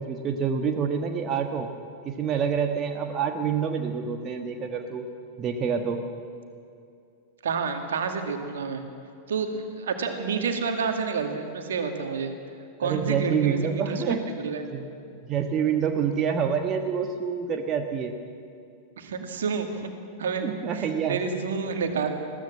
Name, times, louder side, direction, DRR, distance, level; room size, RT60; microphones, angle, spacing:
voice 1, 0.0-1.7 2.0-5.1 5.4-6.0 12.8-14.2 14.7-14.8 15.3-18.2 20.4-21.2, right 7 dB, 30° right, 4 dB, 1.4 m, -27 dB
voice 2, 7.4-8.8 9.3-12.3 12.8-14.6 19.0-19.8 20.2-20.5 20.7-22.1, right 5 dB, 65° right, 5 dB, 2.2 m, -29 dB
21.0 x 16.5 x 7.5 m, 2.5 s
figure-of-eight pair, 90°, 0 cm